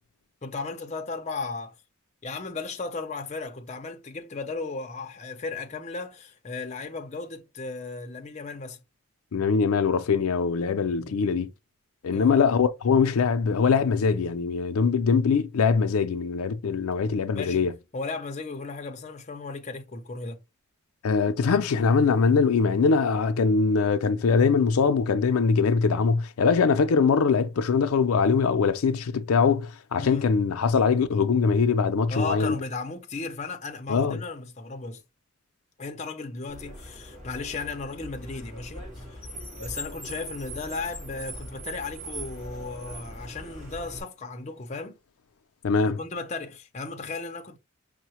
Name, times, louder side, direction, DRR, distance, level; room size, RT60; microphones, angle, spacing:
voice 1, 0.4-1.7 2.2-8.8 11.0-11.2 12.1-12.5 17.3-20.4 30.0-30.3 32.1-35.0 35.8-39.2 39.5-45.0 45.8-47.6, left 3 dB, 35° left, 0.6 m, -35 dB
voice 2, 9.3-11.5 12.0-17.7 21.0-32.6 33.9-34.2 45.6-46.0, left 5 dB, 90° left, 0.5 m, -22 dB
Car, 36.5-44.0, equal, 35° right, 1.7 m, -40 dB
5.4 x 2.1 x 2.9 m
head